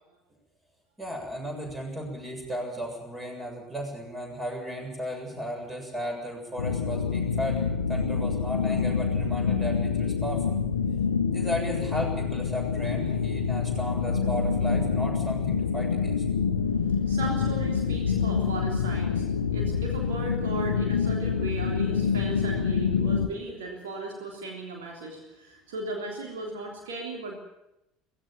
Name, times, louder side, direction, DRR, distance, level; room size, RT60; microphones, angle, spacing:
voice 1, 1.0-7.6 7.9-10.6 11.3-16.2, equal, 20° right, 2 dB, 7.3 m, -35 dB
sound 1, 6.6-23.3, left 6 dB, 80° left, 0.8 m, -27 dB
voice 2, 16.6-27.4, right 2 dB, 70° right, 0 dB, 3.4 m, -37 dB
18.0 x 16.0 x 9.2 m, 0.89 s
figure-of-eight pair, 65°, 0 cm